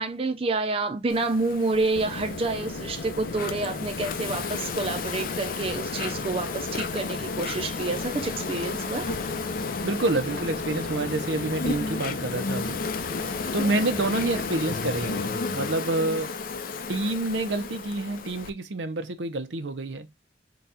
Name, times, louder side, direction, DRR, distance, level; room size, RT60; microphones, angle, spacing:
voice 1, 0.0-9.1 13.4-13.5, right 3 dB, 30° right, 0.4 m, -28 dB
Insect, 1.1-18.5, left 4 dB, 50° left, 0.4 m, -33 dB
sound 1, 1.9-15.3, left 3 dB, 90° left, 0.7 m, -37 dB
voice 2, 9.8-12.8 13.5-16.4 16.9-20.1, right 2 dB, 90° right, 0.7 m, -28 dB
3.9 x 2.3 x 4.1 m
head